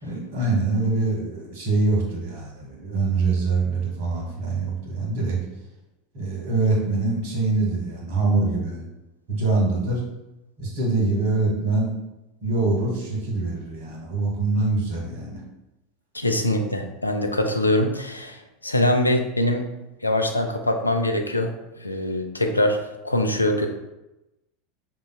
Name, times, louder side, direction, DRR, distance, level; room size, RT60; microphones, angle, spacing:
voice 1, 0.0-5.4 6.1-8.8 9.3-10.0 10.6-11.9 12.4-15.4, right 3 dB, 55° right, -3 dB, 1.5 m, -24 dB
voice 2, 16.1-19.7 20.0-21.5 21.8-22.8 23.0-23.7, left 1 dB, 85° left, 4 dB, 0.4 m, -23 dB
5.3 x 3.0 x 2.3 m, 0.97 s
figure-of-eight pair, 80°, 0 cm